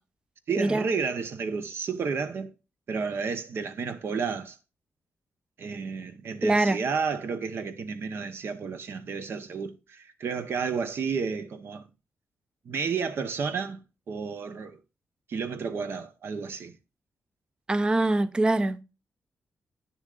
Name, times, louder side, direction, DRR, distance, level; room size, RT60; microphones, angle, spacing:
voice 1, 0.5-2.5 2.9-4.6 5.6-11.9 12.6-14.8 15.3-16.7, right 5 dB, 65° right, 0.9 m, -31 dB
voice 2, 6.4-6.8 17.7-18.8, right 2 dB, 20° right, 0.4 m, -23 dB
9.7 x 7.0 x 2.5 m
wide cardioid pair, 125°, 4 cm